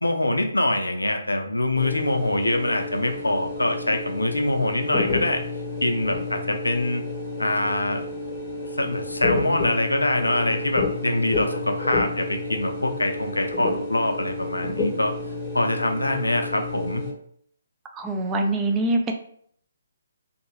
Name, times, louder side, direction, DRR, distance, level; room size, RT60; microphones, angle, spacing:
voice 1, 0.0-5.4 5.8-7.0 7.4-8.0 8.7-15.1 15.5-17.0, left 1 dB, 85° left, 5 dB, 0.5 m, -24 dB
sound 1, 1.7-17.1, left 3 dB, 20° left, 0.7 m, -30 dB
voice 2, 17.9-19.1, right 2 dB, 15° right, 3 dB, 0.3 m, -24 dB
2.6 x 2.6 x 2.9 m, 0.63 s
figure-of-eight pair, 135°, 0 cm